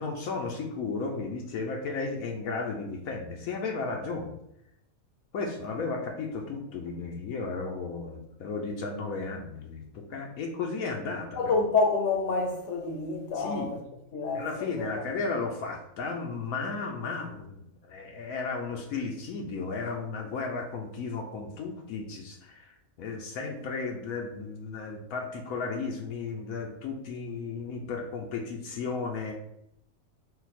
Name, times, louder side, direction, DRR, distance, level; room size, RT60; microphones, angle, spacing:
voice 1, 0.0-4.4 5.3-11.5 13.3-13.7 14.3-29.3, left 4 dB, 80° left, 1.1 m, -34 dB
voice 2, 11.4-13.8 14.1-15.1, left 3 dB, 65° left, 1.0 m, -28 dB
4.0 x 2.4 x 4.1 m
omnidirectional pair, 1.5 m